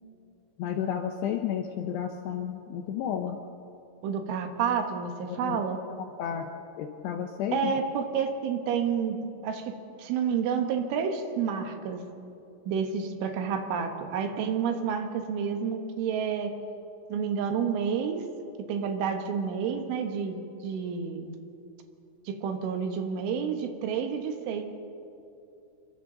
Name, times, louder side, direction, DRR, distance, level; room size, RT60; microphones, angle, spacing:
voice 1, 0.6-3.4 5.3-5.6 6.2-6.5 6.8-7.7, left 9 dB, 80° left, 4 dB, 2.5 m, -32 dB
voice 2, 4.0-5.8 7.5-9.2 9.4-12.0 12.7-16.6 17.1-18.3 18.7-21.3 22.3-24.6, right 6 dB, 75° right, 5 dB, 3.7 m, -29 dB
28.5 x 23.5 x 3.9 m, 2.7 s
omnidirectional pair, 5.8 m